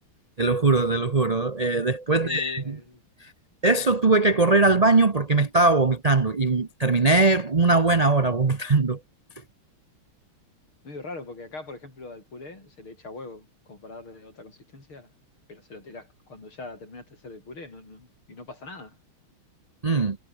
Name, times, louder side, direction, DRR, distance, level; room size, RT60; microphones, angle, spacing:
voice 1, 0.4-2.8 3.2-3.3 3.6-9.0 19.8-20.2, right 3 dB, 55° right, 0.4 m, -21 dB
voice 2, 2.1-3.0 10.8-15.1 15.5-19.0, left 3 dB, 80° left, 7.7 m, -42 dB
omnidirectional pair, 2.3 m